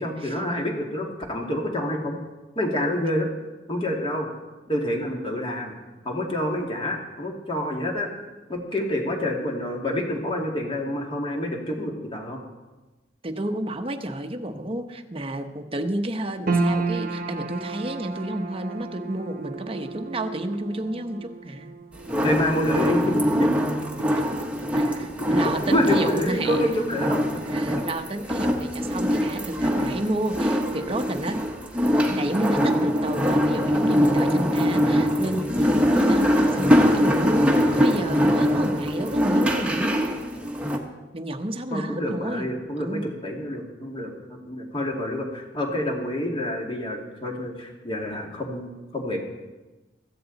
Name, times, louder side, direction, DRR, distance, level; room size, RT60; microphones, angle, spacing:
voice 1, 0.0-2.2 2.6-3.3 3.7-4.3 4.7-5.8 6.0-8.1 8.5-12.4 22.2-23.6 24.1-24.2 25.4-27.2 37.6-38.1 41.7-49.2, left 1 dB, 30° left, 0 dB, 2.3 m, -28 dB
voice 2, 13.2-21.7 24.7-26.6 27.5-31.5 32.1-36.3 36.5-40.2 41.1-43.1, right 1 dB, 30° right, 6 dB, 0.9 m, -30 dB
sound 1, 16.5-28.9 29.1-30.1 30.5-30.6, right 3 dB, 50° right, 1.1 m, -34 dB
sound 2, 22.0-40.8, equal, 5° right, 1.3 m, -23 dB
16.0 x 14.0 x 4.1 m, 1.2 s
head